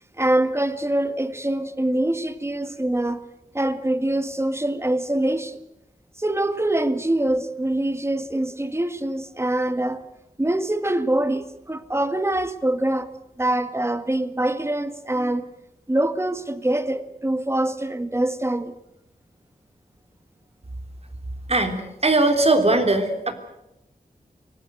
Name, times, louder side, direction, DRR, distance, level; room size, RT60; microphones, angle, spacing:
voice 1, 0.2-3.2 3.5-5.6 6.2-10.0 10.4-13.1 13.4-15.5 15.9-18.8, right 1 dB, 15° right, 1.7 m, -24 dB
voice 2, 21.5-23.3, right 2 dB, 40° right, 3.3 m, -20 dB
24.5 x 19.0 x 7.9 m
wide cardioid pair, 75°, 15 cm